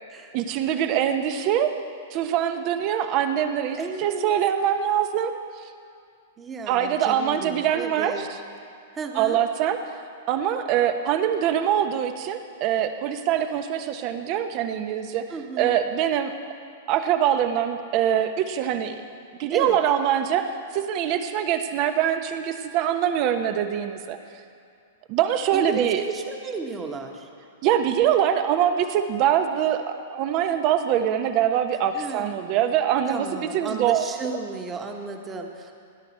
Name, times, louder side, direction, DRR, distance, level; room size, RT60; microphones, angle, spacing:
voice 1, 0.3-1.7 2.1-5.3 6.7-8.3 9.1-9.8 10.3-15.2 15.6-16.3 16.9-18.9 19.4-20.5 20.7-24.2 25.1-26.0 27.6-34.0, right 10 dB, 45° right, 8 dB, 1.0 m, -23 dB
voice 2, 3.8-4.3 6.4-8.3 8.9-9.4 15.3-15.7 19.5-19.8 25.5-27.3 31.9-32.4 33.1-35.8, right 4 dB, 20° right, 3 dB, 1.4 m, -33 dB
18.0 x 10.5 x 4.4 m, 2.4 s
hypercardioid pair, 115°, 0 cm